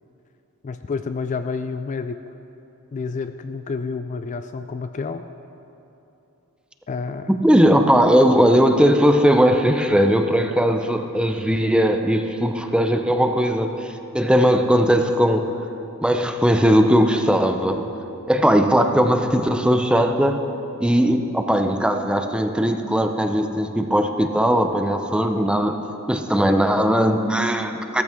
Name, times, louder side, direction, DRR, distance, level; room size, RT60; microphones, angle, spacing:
voice 1, 0.6-2.2 2.9-5.2 6.9-7.3, left 4 dB, 35° left, 9 dB, 0.3 m, -29 dB
voice 2, 7.3-15.5 16.0-17.8 18.3-20.4 20.8-25.8 26.1-28.0, equal, 5° right, 6 dB, 0.6 m, -18 dB
15.5 x 14.0 x 3.6 m, 2.9 s
head